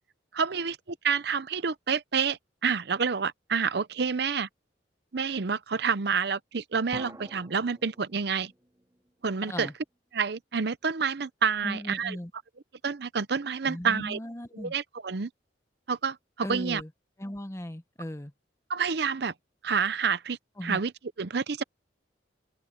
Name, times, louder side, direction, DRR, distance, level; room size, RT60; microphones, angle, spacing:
voice 1, 0.3-4.5 5.1-8.5 9.2-9.7 10.1-12.2 12.8-14.2 14.5-15.3 15.9-16.8 18.7-19.3 19.6-20.9 21.2-21.6, right 6 dB, 60° right, 0.6 m, -28 dB
sound 1, 6.9-9.7, right 1 dB, 20° right, 2.1 m, -48 dB
voice 2, 11.6-12.3 13.7-14.7 16.4-16.9 17.2-18.3 20.6-20.8, left 1 dB, 15° left, 0.8 m, -37 dB
open air
head